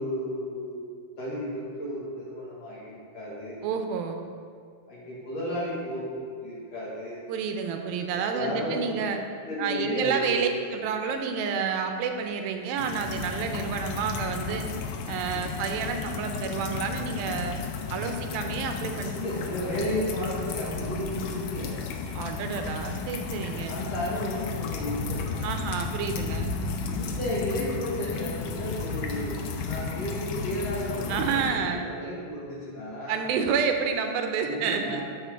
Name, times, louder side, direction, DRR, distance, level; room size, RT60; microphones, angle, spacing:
voice 1, 0.0-3.6 4.9-7.2 8.1-8.8 9.4-10.6 19.1-21.7 23.7-25.5 26.8-33.2 34.4-35.0, left 1 dB, 55° left, -7 dB, 2.3 m, -33 dB
voice 2, 3.6-4.2 7.3-9.2 9.6-14.7 15.1-17.6 17.9-19.1 22.2-23.8 25.4-26.5 31.1-31.8 33.1-35.0, right 6 dB, 85° right, 5 dB, 2.4 m, -29 dB
sound 1, 12.8-31.5, left 5 dB, 80° left, 2.0 m, -33 dB
13.0 x 4.4 x 3.5 m, 2.2 s
omnidirectional pair, 4.2 m